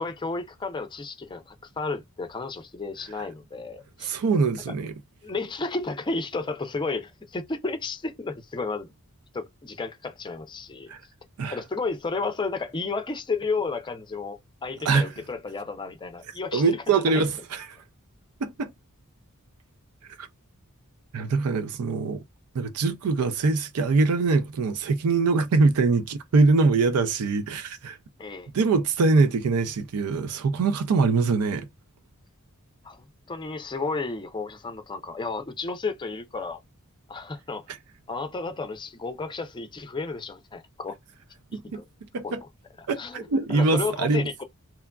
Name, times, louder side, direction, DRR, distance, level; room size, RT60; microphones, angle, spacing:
voice 1, 0.0-4.1 5.2-8.9 9.3-10.9 11.5-17.3 28.2-28.5 32.8-36.6 37.1-37.6 38.1-41.0 41.6-41.8 42.2-42.3 42.8-44.4, left 3 dB, 20° left, 0.4 m, -32 dB
voice 2, 4.0-4.9 10.9-11.0 11.4-11.6 14.8-15.1 16.5-17.8 18.4-18.7 20.2-20.3 21.1-22.2 22.5-28.0 28.5-31.7 37.7-37.8 41.5-41.8 42.1-42.4 42.9-44.3, right 4 dB, 85° right, 0.4 m, -23 dB
2.9 x 2.4 x 2.2 m
head